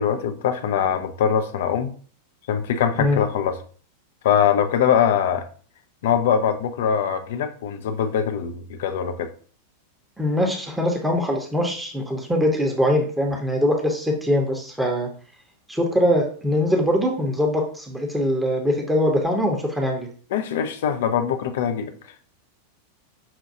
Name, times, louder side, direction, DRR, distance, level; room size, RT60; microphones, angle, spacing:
voice 1, 0.0-1.9 2.5-3.6 4.2-5.5 6.0-9.3 20.3-21.9, left 8 dB, 55° left, 0.4 m, -22 dB
voice 2, 10.2-15.1 15.7-20.1, equal, 5° right, 0.8 m, -22 dB
5.7 x 2.3 x 2.7 m
figure-of-eight pair, 90°, 0 cm